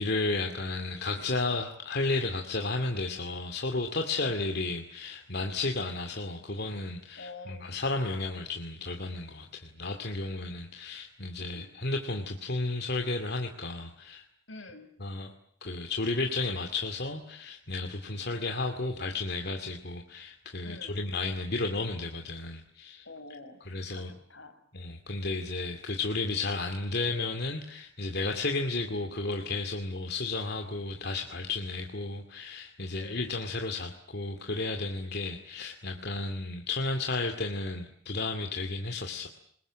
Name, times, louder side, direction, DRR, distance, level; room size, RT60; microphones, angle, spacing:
voice 1, 0.0-14.2 15.0-15.3 15.6-23.1 23.7-24.1 24.7-39.3, left 3 dB, 60° left, 4 dB, 2.3 m, -33 dB
voice 2, 7.2-8.3 11.4-11.8 14.5-14.9 18.2-18.9 20.6-21.2 23.0-24.6 32.9-33.3, left 2 dB, 80° left, 8 dB, 4.9 m, -48 dB
28.0 x 21.0 x 8.9 m, 0.63 s
head